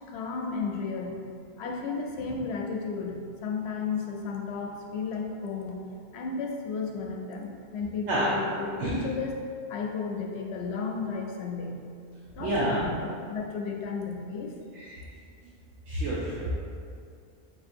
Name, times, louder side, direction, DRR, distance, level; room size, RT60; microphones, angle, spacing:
voice 1, 0.1-1.2 1.6-5.8 6.1-9.4 9.7-11.8 12.3-14.6, left 4 dB, 70° left, 0 dB, 0.8 m, -33 dB
voice 2, 12.4-12.8 14.7-15.0 15.9-16.6, right 1 dB, 85° right, -6 dB, 1.0 m, -28 dB
5.9 x 2.7 x 2.5 m, 2.2 s
omnidirectional pair, 1.2 m